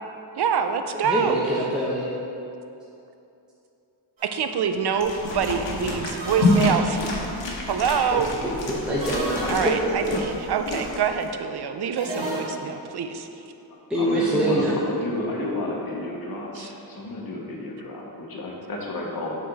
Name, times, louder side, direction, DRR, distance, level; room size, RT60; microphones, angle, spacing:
voice 1, 0.4-1.4 4.3-7.0 7.7-8.3 9.5-13.3 16.6-16.7, right 7 dB, 60° right, 7 dB, 0.5 m, -25 dB
voice 2, 1.1-2.0 8.1-9.3 13.9-14.7, right 1 dB, ahead, -7 dB, 0.9 m, -24 dB
sound 1, 4.2-4.5 6.2-7.2 9.0-10.0 12.0-12.9, right 1 dB, 80° right, 1.4 m, -33 dB
sound 2, 5.0-11.3, left 2 dB, 70° left, 1.2 m, -28 dB
voice 3, 9.4-9.8 13.9-19.5, left 2 dB, 50° left, -2 dB, 1.2 m, -31 dB
7.4 x 4.2 x 4.1 m, 2.8 s
wide cardioid pair, 85°, 45 cm